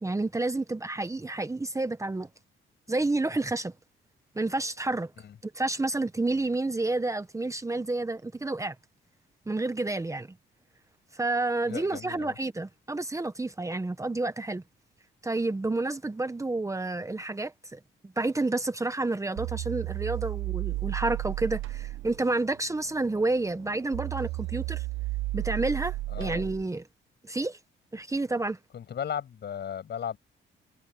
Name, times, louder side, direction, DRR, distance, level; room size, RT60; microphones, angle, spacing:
voice 1, 0.0-2.3 2.9-3.7 4.3-5.1 5.4-8.7 9.5-10.3 11.1-14.6 15.2-17.8 18.2-24.9 25.3-26.9 27.2-27.6 27.9-28.6, right 2 dB, 15° right, 1.1 m, -30 dB
voice 2, 11.7-12.3 26.1-26.4 28.7-30.2, left 8 dB, 60° left, 7.7 m, -36 dB
sound 1, 19.4-26.6, right 19 dB, 85° right, 0.6 m, -33 dB
cardioid pair, 90°, 20 cm